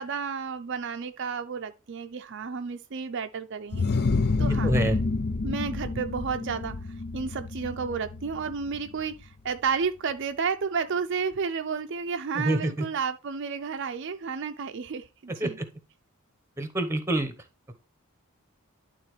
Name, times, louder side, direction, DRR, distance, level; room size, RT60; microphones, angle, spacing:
voice 1, 0.0-3.8 4.4-4.7 5.4-6.7 7.1-15.6, right 5 dB, 55° right, 0.5 m, -31 dB
sound 1, 3.7-9.2, left 3 dB, 50° left, 0.5 m, -29 dB
voice 2, 4.6-5.0 12.3-12.8 15.4-15.6 16.6-17.3, right 1 dB, 10° right, 0.9 m, -26 dB
11.0 x 3.8 x 3.2 m
head